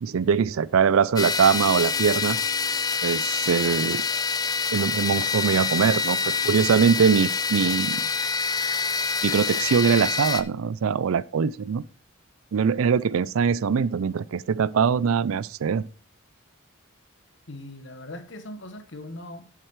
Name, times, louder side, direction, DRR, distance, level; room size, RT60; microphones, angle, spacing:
voice 1, 0.0-2.4 3.0-4.1 4.7-8.0 9.2-11.8 12.5-15.9, right 6 dB, 75° right, 0.4 m, -22 dB
sound 1, 1.2-10.4, left 5 dB, 15° left, 0.4 m, -26 dB
voice 2, 17.5-19.5, left 1 dB, 55° left, 1.1 m, -40 dB
8.0 x 7.6 x 4.6 m
head